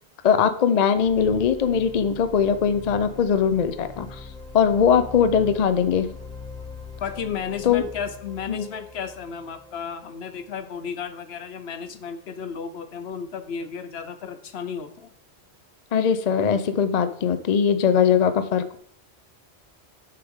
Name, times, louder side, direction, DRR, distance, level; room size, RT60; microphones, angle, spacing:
voice 1, 0.2-4.2 4.5-6.1 7.6-7.8 8.5-8.7 15.9-18.8, left 7 dB, 45° left, 11 dB, 0.6 m, -21 dB
sound 1, 0.9-10.7, left 2 dB, 5° left, 1.8 m, -42 dB
voice 2, 7.0-15.1, left 6 dB, 70° left, 10 dB, 1.0 m, -33 dB
11.0 x 6.9 x 3.6 m, 0.64 s
omnidirectional pair, 1.1 m